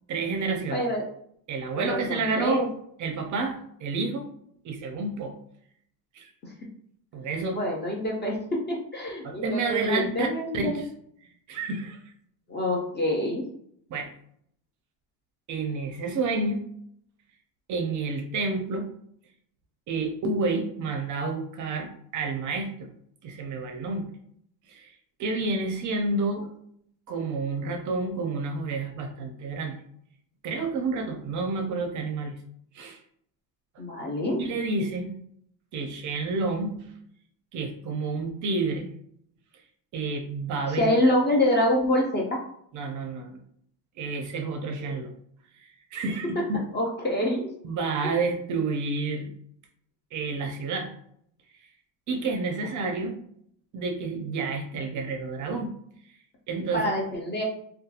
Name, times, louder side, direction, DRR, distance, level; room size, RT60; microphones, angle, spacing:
voice 1, 0.1-0.8 1.5-2.7 3.0-4.3 4.6-5.3 6.1-6.3 7.1-7.6 9.2-10.3 10.5-10.9 11.5-12.0 13.9-14.1 15.5-16.6 17.7-18.9 19.9-22.9 23.2-24.1 24.7-24.9 25.2-26.5 27.1-29.8 30.4-32.4 32.7-33.0 34.4-35.1 35.7-36.8 37.5-38.9 39.9-40.9 42.7-43.4 44.0-45.1 45.6-46.6 47.6-49.3 50.1-50.9 52.1-53.2 53.7-55.7 56.5-56.9, right 3 dB, 40° right, 4 dB, 0.4 m, -29 dB
voice 2, 0.7-1.0 1.8-2.7 6.4-6.5 7.5-10.7 12.5-13.4 33.8-34.4 40.8-42.4 46.4-46.5 46.7-47.5 48.0-48.2 56.7-57.4, left 1 dB, 25° left, -1 dB, 0.4 m, -26 dB
2.7 x 2.2 x 2.3 m, 0.67 s
cardioid pair, 125°, 47 cm